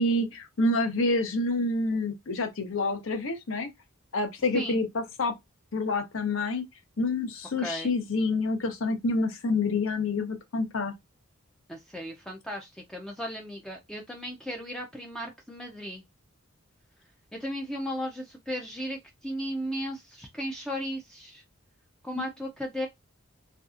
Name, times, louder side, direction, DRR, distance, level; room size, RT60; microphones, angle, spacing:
voice 1, 0.0-3.7 4.1-5.3 5.7-6.6 7.0-10.9 22.2-22.3, left 2 dB, 60° left, 0.6 m, -27 dB
voice 2, 7.6-7.9 11.7-16.0 17.3-21.4 22.0-22.9, equal, 5° left, 0.3 m, -35 dB
2.6 x 2.3 x 2.4 m
head